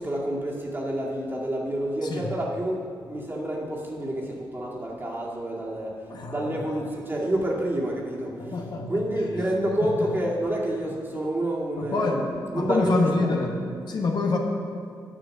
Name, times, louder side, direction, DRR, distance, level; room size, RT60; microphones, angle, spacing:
voice 1, 0.0-13.3, right 1 dB, 25° right, -3 dB, 2.2 m, -29 dB
voice 2, 2.0-2.3 6.1-6.9 8.4-9.3 9.8-10.1 11.8-14.4, left 3 dB, 55° left, 1 dB, 1.3 m, -27 dB
10.0 x 6.6 x 6.5 m, 2.3 s
cardioid pair, 85°, 8 cm